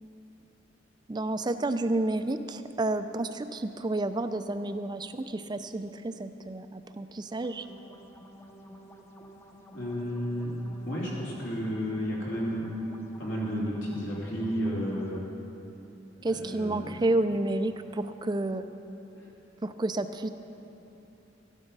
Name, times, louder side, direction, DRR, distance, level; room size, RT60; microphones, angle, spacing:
voice 1, 1.1-7.7 16.2-18.7 19.6-20.3, right 2 dB, 20° right, 10 dB, 0.4 m, -30 dB
sound 1, 7.3-15.2, right 1 dB, 15° left, 0.8 m, -51 dB
voice 2, 9.7-10.5 10.8-12.7 13.2-15.2 16.2-16.9 19.2-19.3, equal, 70° left, -5 dB, 3.0 m, -32 dB
13.5 x 12.0 x 5.4 m, 2.9 s
head